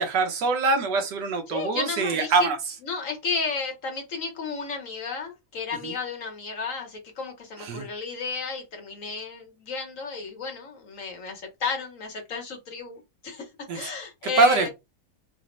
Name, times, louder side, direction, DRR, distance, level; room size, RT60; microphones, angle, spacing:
voice 1, 0.0-2.6 5.8-5.9 7.7-7.9 13.7-13.9 14.4-14.7, right 3 dB, 80° right, 1.5 m, -23 dB
voice 2, 1.5-2.5 2.8-14.7, left 4 dB, 60° left, 1.0 m, -33 dB
4.1 x 2.0 x 3.0 m
omnidirectional pair, 1.8 m